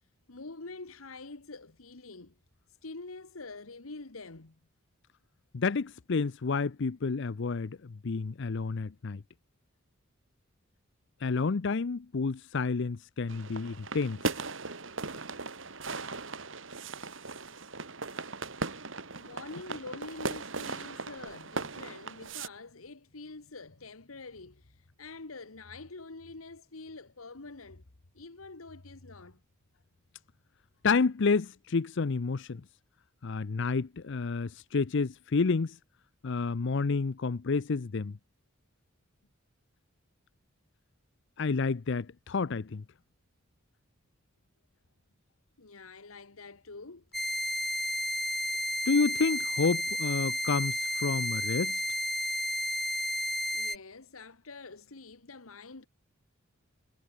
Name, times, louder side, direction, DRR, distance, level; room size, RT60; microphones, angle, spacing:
voice 1, 0.3-2.4 2.8-4.6 19.1-27.8 28.1-29.4 45.6-47.0 53.5-55.9, left 3 dB, 90° left, 1.6 m, -46 dB
voice 2, 5.5-9.2 11.2-14.2 30.8-32.6 33.2-35.8 36.2-38.2 41.4-42.8 48.9-51.8, left 4 dB, 60° left, 0.6 m, -30 dB
sound 1, 13.3-22.5, right 3 dB, 65° right, 2.8 m, -38 dB
sound 2, 47.1-53.8, equal, ahead, 0.4 m, -32 dB
head